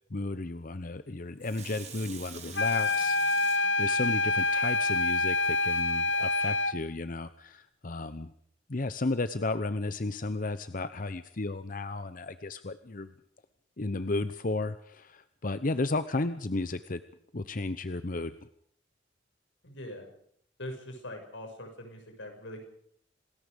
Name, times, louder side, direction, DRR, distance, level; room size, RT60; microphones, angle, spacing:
voice 1, 0.1-3.5 3.8-8.3 8.7-13.1 13.8-17.0 17.3-18.3, left 2 dB, 45° left, 12 dB, 0.9 m, -33 dB
Water tap faucet / Sink (filling or washing), 1.4-5.2 5.7-5.8, right 7 dB, 40° right, 3.5 m, -47 dB
sound 1, 2.5-6.8, left 3 dB, 70° left, 1.1 m, -27 dB
voice 2, 19.6-20.1 20.6-22.7, left 1 dB, 90° left, 4 dB, 6.7 m, -42 dB
27.0 x 20.0 x 5.2 m, 0.67 s
head